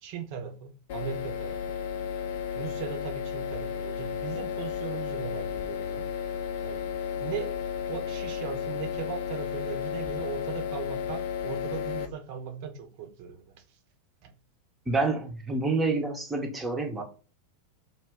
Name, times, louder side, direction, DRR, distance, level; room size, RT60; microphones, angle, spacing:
voice 1, 0.0-1.8 2.6-6.1 6.6-6.8 7.2-7.6 7.9-13.6 14.2-14.3, right 7 dB, 50° right, 0.6 m, -38 dB
sound 1, 0.9-12.1, left 8 dB, 60° left, 0.5 m, -33 dB
voice 2, 14.9-17.0, right 3 dB, 15° right, 0.7 m, -28 dB
2.3 x 2.2 x 3.4 m
figure-of-eight pair, 90°, 0 cm